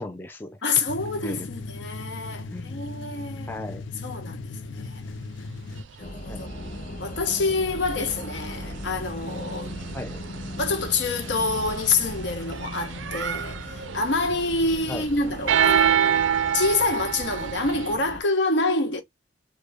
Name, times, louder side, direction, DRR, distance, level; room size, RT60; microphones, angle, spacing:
voice 1, 0.0-0.6 1.2-1.5 2.5-2.8 3.5-3.8 6.3-6.4 9.9-10.2 14.9-15.1, left 2 dB, 10° left, 0.3 m, -36 dB
voice 2, 0.6-3.5 4.0-5.0 6.0-6.5 7.0-9.7 10.6-16.2 16.5-19.0, left 3 dB, 70° left, 1.1 m, -27 dB
sound 1, 0.9-5.8, left 3 dB, 90° left, 0.4 m, -37 dB
sound 2, 5.8-5.9 6.4-18.0, right 8 dB, 80° right, 0.4 m, -28 dB
sound 3, 6.0-18.2, left 2 dB, 45° left, 0.7 m, -39 dB
3.2 x 2.1 x 3.4 m
head